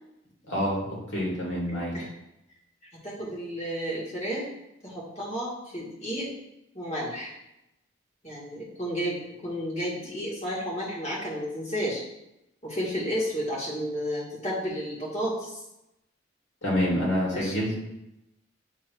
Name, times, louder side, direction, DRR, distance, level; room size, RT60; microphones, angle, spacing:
voice 1, 0.5-1.9 16.6-17.7, equal, 80° left, -4 dB, 2.5 m, -27 dB
voice 2, 3.0-4.5 4.8-6.3 6.7-7.3 8.2-12.0 12.6-15.6 17.3-17.7, equal, 35° left, -6 dB, 2.3 m, -32 dB
7.4 x 3.1 x 4.7 m, 0.87 s
head